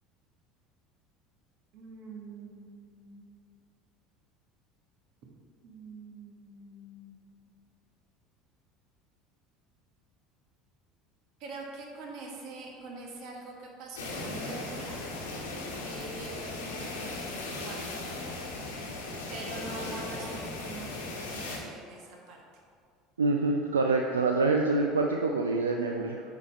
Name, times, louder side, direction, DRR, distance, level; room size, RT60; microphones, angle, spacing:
voice 1, 1.7-3.5 5.6-7.6 11.4-15.0 15.8-17.8 18.2-18.3 19.3-22.4, right 3 dB, 55° right, 0 dB, 1.3 m, -44 dB
sound 1, 14.0-21.6, left 2 dB, 80° left, 1.1 m, -37 dB
voice 2, 23.2-26.2, right 3 dB, 85° right, 2 dB, 0.3 m, -26 dB
8.0 x 4.1 x 4.2 m, 2.2 s
hypercardioid pair, 70°, 0 cm